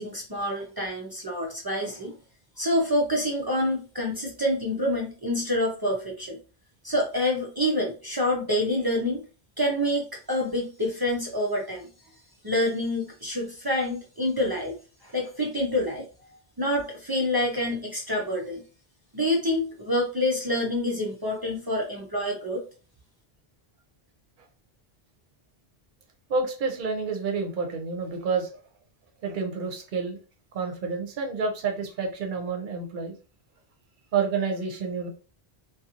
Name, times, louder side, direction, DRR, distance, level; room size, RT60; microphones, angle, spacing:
voice 1, 0.0-2.1 2.6-6.4 6.8-9.2 9.6-11.9 12.4-14.8 15.0-16.0 16.6-18.6 19.1-22.6, left 1 dB, 35° right, -1 dB, 0.3 m, -27 dB
voice 2, 26.3-28.5 29.2-30.2 30.5-33.1 34.1-35.1, right 5 dB, 55° right, 3 dB, 0.8 m, -29 dB
2.5 x 2.3 x 2.8 m, 0.36 s
omnidirectional pair, 1.0 m